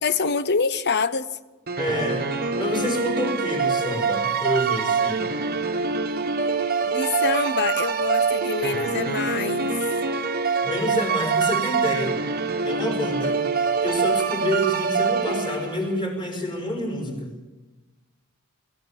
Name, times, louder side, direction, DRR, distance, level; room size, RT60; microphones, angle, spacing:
voice 1, 0.0-1.3 6.9-9.7, left 5 dB, 50° left, 1.0 m, -25 dB
sound 1, 1.7-16.0, right 5 dB, 45° right, 1.2 m, -25 dB
voice 2, 1.8-2.3 2.6-5.3 10.6-12.2 12.7-13.4 13.8-17.3, equal, 20° left, 5.4 m, -28 dB
27.5 x 15.5 x 7.4 m
head